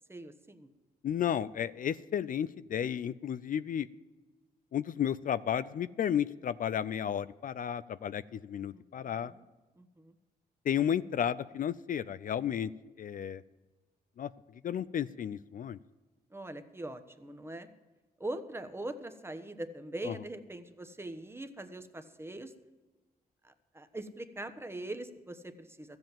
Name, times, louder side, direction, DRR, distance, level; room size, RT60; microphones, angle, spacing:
voice 1, 0.1-0.7 8.7-9.4 9.8-10.1 16.3-17.7 18.2-22.5 23.4-26.0, right 1 dB, 15° right, 8 dB, 1.1 m, -42 dB
voice 2, 1.0-3.9 4.7-9.3 10.7-12.7 13.0-13.4 14.2-14.3 14.6-15.8 20.1-20.2, left 9 dB, 55° left, 16 dB, 0.4 m, -33 dB
14.0 x 7.9 x 7.3 m, 1.2 s
cardioid pair, 80°, 17 cm